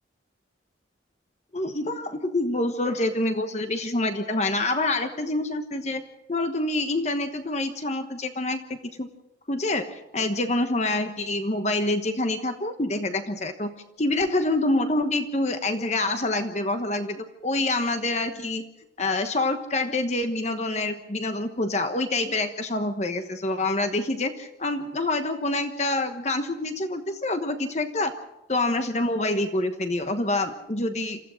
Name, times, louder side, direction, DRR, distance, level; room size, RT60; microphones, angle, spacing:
voice 1, 1.5-6.0 6.3-9.1 9.5-13.7 14.0-18.7 19.0-28.1 28.5-31.2, left 2 dB, 35° left, 7 dB, 1.2 m, -26 dB
27.0 x 15.0 x 6.4 m, 0.90 s
head